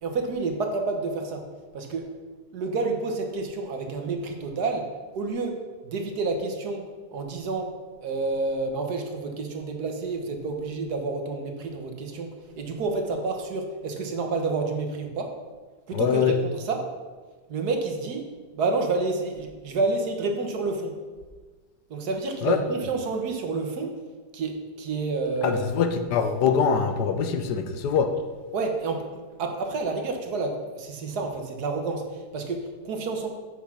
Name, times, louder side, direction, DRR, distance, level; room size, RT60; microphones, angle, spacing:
voice 1, 0.0-1.5 1.7-2.1 2.5-7.7 8.0-15.3 15.9-16.9 17.5-21.0 21.9-23.9 24.3-25.7 28.5-29.1 29.4-33.3, right 3 dB, 70° right, 4 dB, 1.6 m, -29 dB
voice 2, 15.9-16.3 22.4-22.6 25.4-28.1, left 6 dB, 80° left, 7 dB, 1.4 m, -23 dB
8.3 x 5.8 x 5.9 m, 1.4 s
omnidirectional pair, 1.8 m